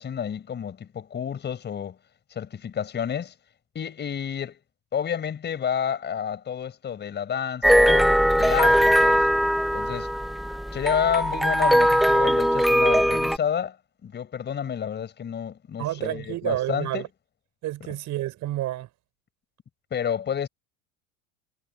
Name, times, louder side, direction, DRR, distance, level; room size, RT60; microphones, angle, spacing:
voice 1, 0.0-2.0 2.3-3.3 3.7-4.6 4.9-9.3 9.7-10.1 10.7-13.8 14.0-17.0 19.9-20.5, left 8 dB, 25° left, 6.1 m, -30 dB
sound 1, 7.6-13.4, equal, ahead, 0.4 m, -20 dB
voice 2, 15.8-17.1 17.6-18.9, right 15 dB, 45° right, 6.5 m, -29 dB
cardioid pair, 150°, 40 cm